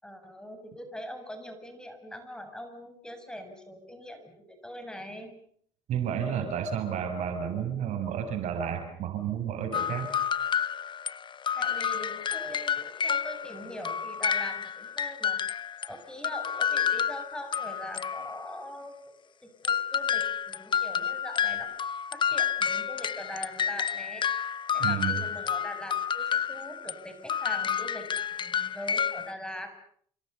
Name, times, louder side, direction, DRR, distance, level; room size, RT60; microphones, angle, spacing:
voice 1, 0.0-5.3 11.6-15.4 15.9-21.8 22.1-24.2 24.7-29.7, equal, 5° left, 7 dB, 7.3 m, -42 dB
voice 2, 5.9-10.1 24.8-25.2, right 8 dB, 65° right, 6 dB, 7.4 m, -31 dB
sound 1, 9.7-15.9 16.2-18.6 19.6-27.0 27.3-29.3, left 8 dB, 40° left, 1.1 m, -30 dB
29.0 x 25.5 x 7.0 m, 0.63 s
supercardioid pair, 85°, 13 cm